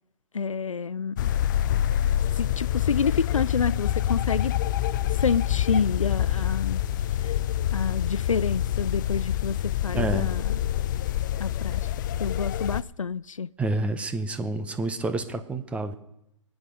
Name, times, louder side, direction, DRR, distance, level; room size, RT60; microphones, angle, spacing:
voice 1, 0.3-1.3 2.3-4.5 5.1-6.8 7.2-7.3 7.7-10.6 11.4-11.9 12.2-13.5, left 5 dB, 90° left, 0.4 m, -28 dB
sound 1, 1.2-12.8, left 11 dB, 40° left, 0.5 m, -26 dB
voice 2, 9.9-10.3 13.6-15.9, right 2 dB, 5° right, 0.8 m, -28 dB
22.5 x 8.7 x 5.1 m
figure-of-eight pair, 130°, 16 cm